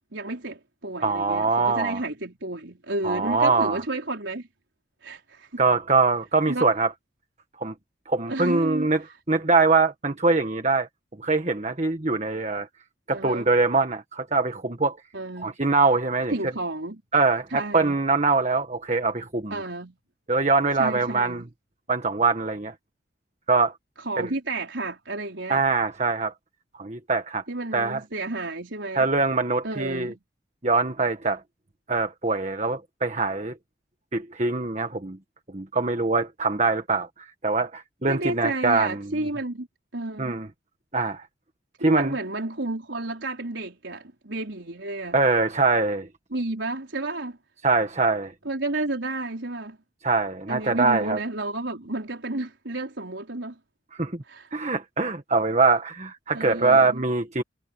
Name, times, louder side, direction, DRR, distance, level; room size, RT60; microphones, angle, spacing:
voice 1, 0.1-4.5 5.0-5.6 6.5-6.6 8.3-8.9 13.1-13.5 15.1-15.5 16.3-17.0 17.5-18.0 19.5-20.0 20.8-21.4 24.0-25.6 27.5-29.1 29.6-30.2 38.1-39.7 39.9-40.4 41.8-45.2 46.3-47.4 48.4-49.8 50.5-53.6 54.3-54.5 56.3-57.0, right 2 dB, 80° right, 4.1 m, -31 dB
voice 2, 1.0-2.0 3.0-3.8 5.6-6.9 7.6-7.7 8.1-10.9 11.2-12.7 13.1-15.0 15.4-16.4 17.1-19.5 20.3-21.4 21.9-22.7 23.5-23.7 24.2-24.3 25.5-26.3 26.8-27.4 27.7-28.0 28.9-30.1 30.6-31.4 31.9-33.5 34.1-35.2 35.5-39.1 40.2-40.5 40.9-41.2 41.8-42.2 45.1-46.1 47.6-48.3 50.0-51.2 54.0-54.2 54.5-57.4, right 3 dB, 35° right, 1.5 m, -23 dB
head